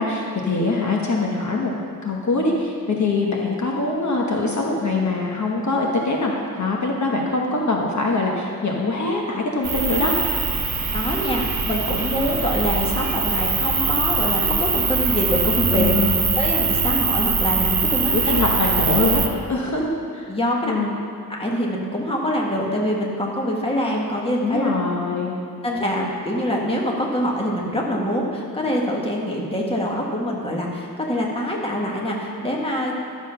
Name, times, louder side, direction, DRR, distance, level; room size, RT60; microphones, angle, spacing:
voice 1, 0.0-1.7 2.0-6.3 6.6-10.1 15.7-16.2 18.1-19.2 19.5-20.3 20.6-20.9 24.4-25.3, left 3 dB, 55° left, -1 dB, 1.2 m, -23 dB
sound 1, 9.6-19.3, right 5 dB, 55° right, 1.2 m, -22 dB
voice 2, 10.9-15.9 16.3-18.5 20.3-20.7 21.3-24.7 25.6-32.9, equal, 15° left, -2 dB, 1.5 m, -24 dB
12.0 x 7.3 x 5.6 m, 2.5 s
wide cardioid pair, 160°, 35 cm